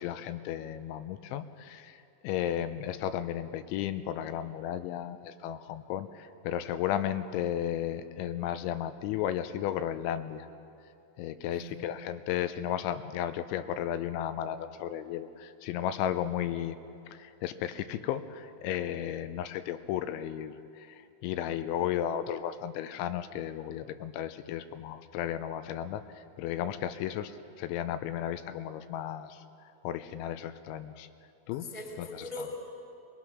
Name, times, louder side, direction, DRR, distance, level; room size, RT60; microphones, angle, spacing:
voice 1, 0.0-10.5 11.2-16.8 17.1-29.4 29.8-31.1 31.5-31.7 32.0-32.3, left 10 dB, 85° left, 10 dB, 3.0 m, -34 dB
voice 2, 11.5-12.0 31.5-32.6, left 2 dB, 5° right, 1 dB, 1.6 m, -41 dB
22.0 x 21.0 x 6.0 m, 2.6 s
omnidirectional pair, 5.4 m